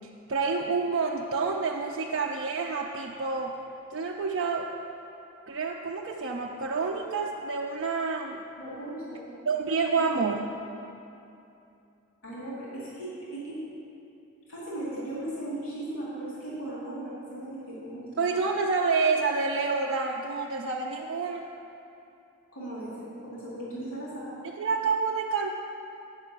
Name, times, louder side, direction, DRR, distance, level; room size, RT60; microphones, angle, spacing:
voice 1, 0.3-3.6 3.9-4.7 5.5-8.4 9.5-10.5 18.2-21.5 24.4-25.6, right 4 dB, 55° right, -1 dB, 0.4 m, -28 dB
voice 2, 8.6-9.3 9.9-10.0 12.2-13.6 14.5-18.1 22.5-24.4, right 1 dB, 80° left, -8 dB, 2.3 m, -37 dB
7.9 x 5.3 x 7.3 m, 2.7 s
head